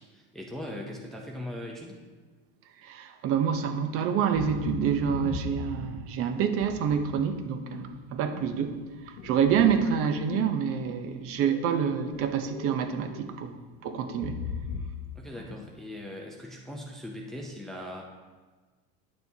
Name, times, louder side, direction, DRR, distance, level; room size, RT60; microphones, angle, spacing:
voice 1, 0.0-1.9 15.2-18.0, left 1 dB, ahead, -1 dB, 0.6 m, -40 dB
voice 2, 2.8-8.7 9.2-13.6 13.8-14.4, right 7 dB, 50° right, 8 dB, 0.7 m, -27 dB
sound 1, 4.4-6.1 6.6-7.3 7.7-10.8 11.2-12.8 13.0-13.3 13.9-15.1 15.4-15.7, left 5 dB, 80° left, 0.8 m, -38 dB
9.5 x 6.8 x 2.7 m, 1.3 s
supercardioid pair, 120°, 29 cm